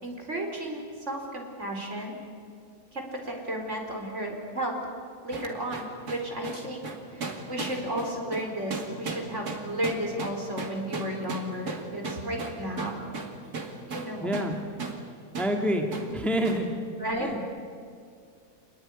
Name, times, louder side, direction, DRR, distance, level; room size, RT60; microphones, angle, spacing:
voice 1, 0.0-2.2 2.9-4.8 5.2-13.0 13.9-14.4 16.1-16.2 17.0-17.3, right 1 dB, 50° right, 2 dB, 4.8 m, -33 dB
sound 1, 5.3-14.5 14.8-15.0 15.3-15.6 15.9-16.1 16.4-16.7, right 4 dB, 85° right, 3.0 m, -36 dB
voice 2, 14.2-14.5 15.4-15.9 16.1-16.7 17.2-17.5, equal, ahead, 3 dB, 2.0 m, -27 dB
26.5 x 20.5 x 10.0 m, 2.3 s
omnidirectional pair, 1.6 m